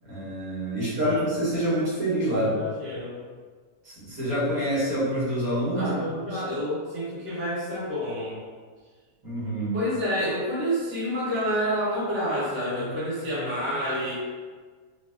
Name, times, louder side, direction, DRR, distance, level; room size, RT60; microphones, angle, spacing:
voice 1, 0.1-2.6 3.9-5.9 6.3-6.4 9.2-9.8, right 1 dB, 60° right, -9 dB, 1.6 m, -26 dB
voice 2, 0.8-1.3 2.4-3.3 5.7-8.4 9.7-14.1, equal, 20° right, -9 dB, 0.3 m, -29 dB
3.1 x 2.4 x 2.6 m, 1.5 s
omnidirectional pair, 1.8 m